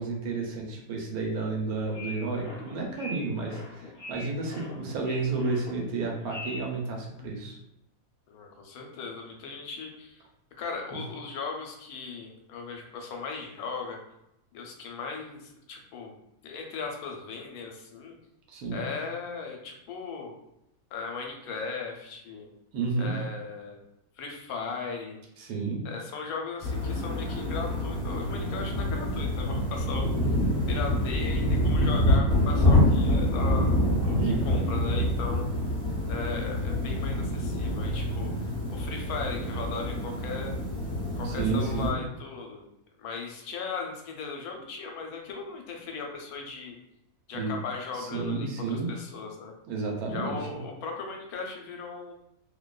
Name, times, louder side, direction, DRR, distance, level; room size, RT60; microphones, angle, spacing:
voice 1, 0.0-7.6 10.9-11.0 18.5-18.9 22.7-23.1 25.4-25.9 34.2-34.5 41.2-42.0 47.3-47.6 47.9-48.9 49.7-50.4, right 3 dB, 85° right, 0 dB, 1.1 m, -31 dB
sound 1, 1.8-6.8, left 2 dB, 55° left, 0.5 m, -42 dB
voice 2, 8.3-10.2 10.6-14.0 14.5-16.1 16.4-18.2 18.7-20.3 20.9-22.5 23.0-23.8 24.2-25.2 25.8-30.1 30.7-33.7 34.0-35.5 36.1-40.5 41.2-42.6 43.0-46.8 47.3-49.5 50.1-52.1, left 4 dB, 80° left, 2 dB, 1.1 m, -37 dB
sound 2, 26.6-41.9, left 1 dB, 30° right, 1.1 m, -26 dB
2.6 x 2.2 x 2.2 m, 0.82 s
omnidirectional pair, 1.6 m